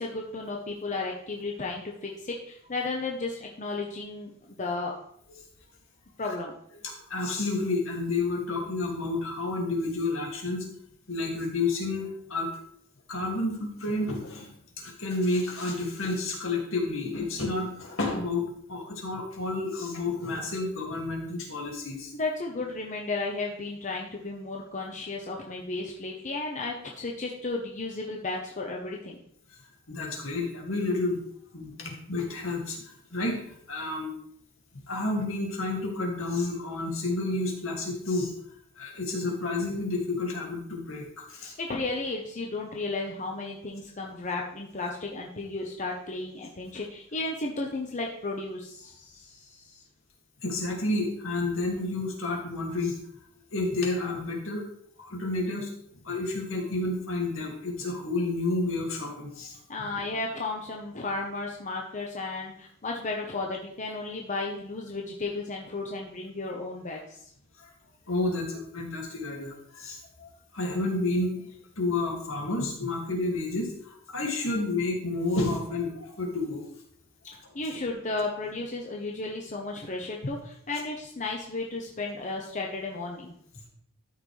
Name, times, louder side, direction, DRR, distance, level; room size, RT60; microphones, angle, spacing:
voice 1, 0.0-4.3 4.6-4.9 6.2-6.5 22.1-29.2 41.6-49.2 59.7-67.0 77.5-83.3, left 3 dB, 35° left, 0 dB, 1.0 m, -34 dB
voice 2, 6.8-10.7 11.1-12.5 13.1-14.5 14.8-22.1 29.9-31.2 31.5-34.1 34.9-38.3 38.8-41.5 50.4-53.0 53.5-54.7 55.0-55.7 56.0-59.9 67.6-67.7 68.1-71.5 71.8-76.8, left 2 dB, 70° left, 0 dB, 2.3 m, -30 dB
13.0 x 5.9 x 3.3 m, 0.69 s
head